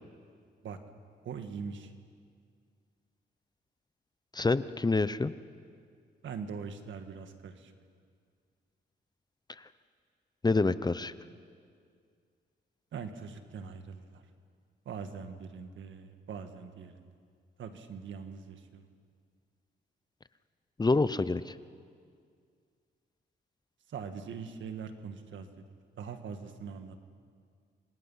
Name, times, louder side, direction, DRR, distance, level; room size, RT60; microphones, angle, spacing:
voice 1, 1.2-1.9 6.2-7.7 12.9-14.2 14.8-17.1 17.6-18.9 23.9-25.6 26.0-27.0, right 6 dB, 80° right, 7 dB, 1.7 m, -42 dB
voice 2, 4.3-5.3 10.4-11.1 20.8-21.5, left 3 dB, 20° left, 14 dB, 0.7 m, -27 dB
28.5 x 24.0 x 5.7 m, 2.1 s
cardioid pair, 80°, 19 cm